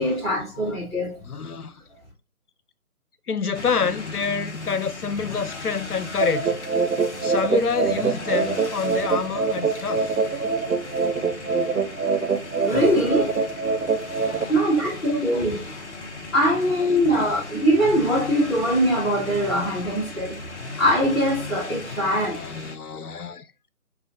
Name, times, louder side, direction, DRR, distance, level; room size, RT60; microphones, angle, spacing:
voice 1, 0.0-1.1 12.6-13.4 14.5-15.7 16.3-20.3 20.8-22.4, equal, 10° left, 1.5 m, -22 dB
voice 2, 1.2-1.7 3.3-6.5 7.2-10.5 14.0-14.8 15.5-15.6 17.0-17.4 19.8-20.2 21.9-23.5, left 5 dB, 85° left, 0.7 m, -28 dB
sound 1, 3.5-22.8, left 3 dB, 50° left, 0.9 m, -37 dB
sound 2, 6.2-14.4, right 5 dB, 80° right, 0.7 m, -24 dB
5.5 x 2.5 x 3.8 m
figure-of-eight pair, 155°, 44 cm